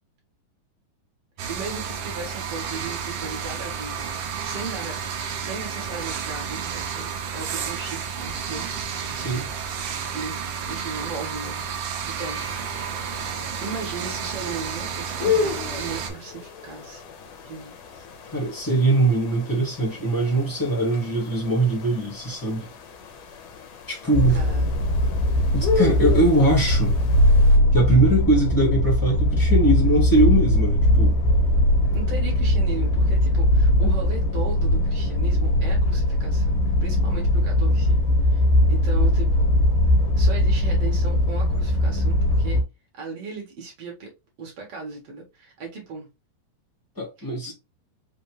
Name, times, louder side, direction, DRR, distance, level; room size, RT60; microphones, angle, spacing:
sound 1, 1.4-16.1, right 7 dB, 80° right, 1.4 m, -31 dB
voice 1, 1.5-4.1 4.4-8.7 10.1-10.4 10.7-11.7 12.1-12.7 13.6-17.0 17.4-18.1 24.3-24.8 31.9-39.5 40.2-42.6 43.0-44.1 44.4-46.1 47.2-47.5, right 4 dB, 55° right, 2.0 m, -37 dB
voice 2, 9.1-9.5 18.3-22.7 23.9-24.4 25.5-27.0 27.7-31.2 33.8-34.0 46.9-47.5, right 2 dB, 15° left, 0.7 m, -21 dB
sound 2, 12.2-27.6, left 4 dB, 70° left, 1.7 m, -33 dB
sound 3, 24.1-42.6, left 1 dB, 85° left, 2.7 m, -20 dB
5.5 x 2.7 x 3.0 m
omnidirectional pair, 3.9 m